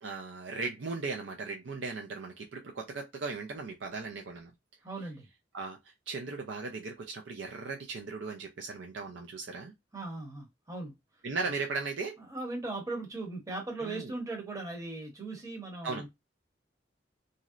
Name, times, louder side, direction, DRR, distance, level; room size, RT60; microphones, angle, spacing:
voice 1, 0.0-4.5 5.5-5.8 6.1-9.7 11.2-12.2 13.8-14.1 15.8-16.0, right 4 dB, 85° right, 0.5 m, -37 dB
voice 2, 4.8-5.3 9.9-11.0 12.2-16.1, right 2 dB, 20° right, 0.8 m, -38 dB
3.0 x 2.7 x 2.4 m
head